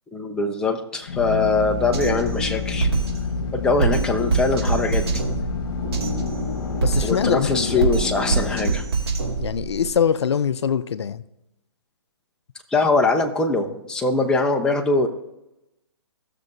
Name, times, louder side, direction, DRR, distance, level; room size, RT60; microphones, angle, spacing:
voice 1, 0.1-2.9 3.5-5.1 7.0-8.8 12.7-15.1, left 3 dB, 5° left, 3 dB, 0.6 m, -22 dB
Drill, 1.0-9.7, left 5 dB, 55° left, 1.4 m, -29 dB
Drum kit, 1.9-9.9, right 5 dB, 60° right, 2.9 m, -26 dB
voice 2, 6.8-7.9 9.4-11.2, left 7 dB, 75° left, 15 dB, 0.5 m, -23 dB
15.5 x 6.6 x 2.6 m, 0.89 s
hypercardioid pair, 145°, 14 cm